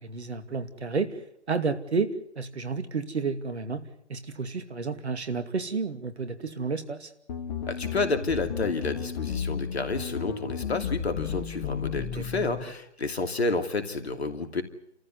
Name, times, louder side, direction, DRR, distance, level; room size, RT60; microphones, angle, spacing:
voice 1, 0.0-1.2 1.5-2.1 2.4-3.8 4.1-7.1 12.2-12.4, right 4 dB, 70° right, 9 dB, 2.5 m, -31 dB
sound 1, 7.3-12.6, left 7 dB, 40° left, 2.3 m, -33 dB
voice 2, 7.7-14.6, left 3 dB, 65° left, 7 dB, 2.8 m, -30 dB
30.0 x 14.5 x 9.6 m, 0.75 s
figure-of-eight pair, 125°, 34 cm